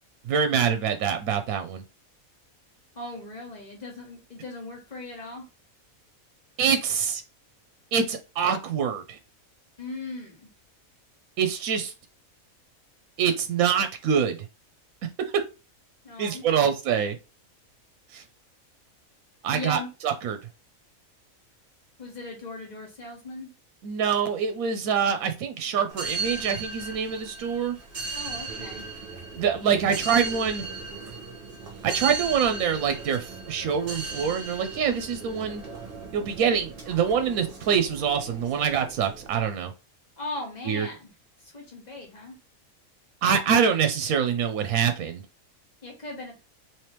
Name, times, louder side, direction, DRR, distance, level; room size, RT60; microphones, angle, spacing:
voice 1, 0.2-1.8 6.6-7.2 7.9-9.2 11.4-11.9 13.2-14.4 16.2-17.2 18.1-18.2 19.4-20.4 23.8-27.8 29.3-30.6 31.8-35.6 36.1-39.7 40.7-40.9 43.2-45.2, right 7 dB, 80° right, 8 dB, 1.0 m, -25 dB
voice 2, 2.9-5.5 9.8-10.5 16.0-16.7 19.5-19.9 22.0-23.5 28.1-28.9 40.2-41.1 41.4-42.3 45.8-46.3, left 2 dB, 30° left, -1 dB, 1.4 m, -38 dB
sound 1, 25.9-39.4, right 4 dB, 40° right, 1.1 m, -36 dB
3.2 x 3.1 x 2.9 m, 0.30 s
omnidirectional pair, 1.5 m